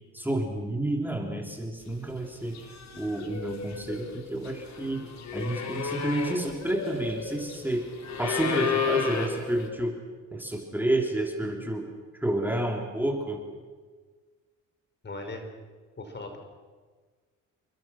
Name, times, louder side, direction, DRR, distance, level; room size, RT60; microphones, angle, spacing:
voice 1, 0.1-2.6 3.0-5.1 5.3-7.8 8.2-9.9 10.3-11.9 12.2-13.4, right 1 dB, 5° right, 1 dB, 3.5 m, -30 dB
sound 1, 2.1-2.3 2.5-9.7, left 5 dB, 65° left, 4.1 m, -33 dB
voice 2, 15.0-15.5 16.0-16.4, left 2 dB, 35° left, 5 dB, 5.3 m, -38 dB
28.5 x 23.0 x 6.3 m, 1.5 s
cardioid pair, 90°, 30 cm